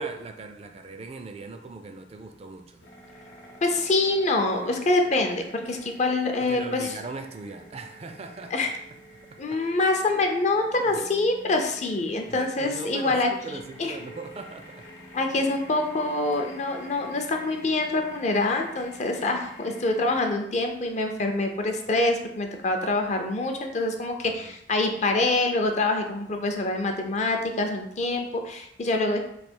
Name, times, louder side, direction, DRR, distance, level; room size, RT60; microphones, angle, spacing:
voice 1, 0.0-2.8 6.5-8.7 10.8-11.1 12.3-14.9 24.2-24.5, right 3 dB, 35° right, 6 dB, 0.4 m, -40 dB
sound 1, 2.8-20.3, equal, 90° left, 0.9 m, -48 dB
voice 2, 3.6-6.9 8.5-8.7 9.4-13.3 13.8-14.0 15.1-29.2, left 2 dB, 40° left, 4 dB, 0.5 m, -25 dB
3.3 x 2.4 x 4.4 m, 0.74 s
head